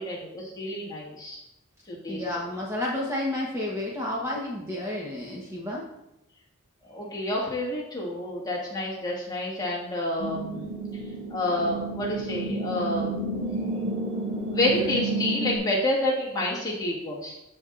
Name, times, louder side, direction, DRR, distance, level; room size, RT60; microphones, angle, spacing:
voice 1, 0.0-1.4 1.9-2.3 6.8-10.7 11.3-13.2 14.5-17.4, left 1 dB, 20° left, -5 dB, 1.7 m, -29 dB
voice 2, 2.1-5.8, left 1 dB, 10° right, -4 dB, 1.0 m, -31 dB
sound 1, 10.2-15.6, right 2 dB, 85° right, 2.2 m, -31 dB
13.5 x 4.5 x 2.5 m, 0.88 s
head